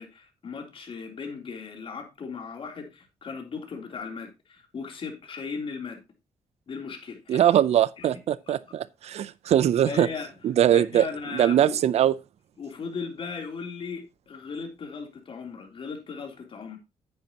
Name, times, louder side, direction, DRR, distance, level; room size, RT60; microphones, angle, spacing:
voice 1, 0.0-6.0 6.7-7.4 8.0-8.1 9.2-9.3 9.9-10.3 10.7-11.8 12.6-16.8, left 5 dB, 50° left, 3.3 m, -37 dB
voice 2, 7.3-10.1 10.4-12.1, right 10 dB, 70° right, 0.6 m, -22 dB
9.7 x 9.2 x 2.9 m
cardioid pair, 95°, 11 cm